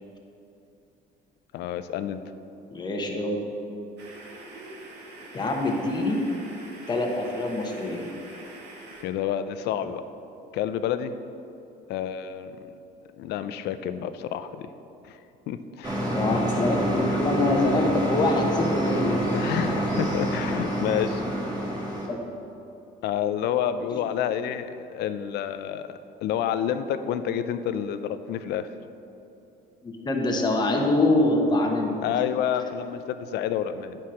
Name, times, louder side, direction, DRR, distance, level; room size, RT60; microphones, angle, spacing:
voice 1, 1.5-2.2 9.0-10.0 10.5-11.1 11.9-12.6 13.2-14.7 15.0-15.2 15.5-16.1 19.3-21.2 23.0-28.7 32.0-34.0, left 9 dB, 65° left, 11 dB, 0.5 m, -29 dB
voice 2, 2.7-3.4 5.3-6.2 6.9-8.1 16.1-19.2 22.1-22.2 23.9-24.0 29.8-32.0, left 2 dB, 25° left, 1 dB, 1.1 m, -24 dB
sound 1, 4.0-9.0, right 2 dB, 75° right, 1.4 m, -44 dB
sound 2, 15.8-22.1, right 1 dB, 20° right, 1.6 m, -27 dB
9.4 x 4.3 x 6.3 m, 2.8 s
cardioid pair, 135°, 18 cm